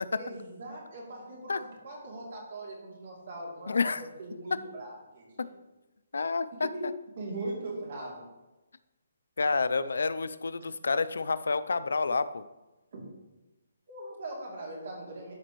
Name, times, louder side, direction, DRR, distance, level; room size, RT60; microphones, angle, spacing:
voice 1, 0.1-5.5 6.6-6.8 7.2-8.2 12.9-13.0 13.9-15.3, right 2 dB, 45° right, -2 dB, 2.8 m, -40 dB
voice 2, 3.7-4.0 6.1-6.7 9.4-12.4, left 4 dB, 85° left, 14 dB, 0.4 m, -29 dB
13.0 x 5.0 x 3.1 m, 1.1 s
hypercardioid pair, 175°, 0 cm